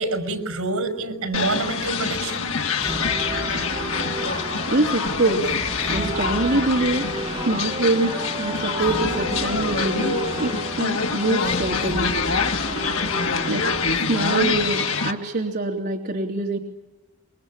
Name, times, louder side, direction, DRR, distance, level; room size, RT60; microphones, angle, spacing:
voice 1, 0.0-2.5, right 3 dB, 80° right, 8 dB, 5.7 m, -27 dB
sound 1, 1.3-15.1, left 5 dB, 70° left, 2.1 m, -26 dB
sound 2, 2.8-14.8, right 2 dB, 25° right, 1.2 m, -32 dB
voice 2, 4.7-5.5 5.9-7.1 7.5-12.1 13.5-13.7 14.1-16.6, right 2 dB, 50° right, -1 dB, 3.3 m, -24 dB
28.0 x 23.5 x 8.9 m, 1.0 s
head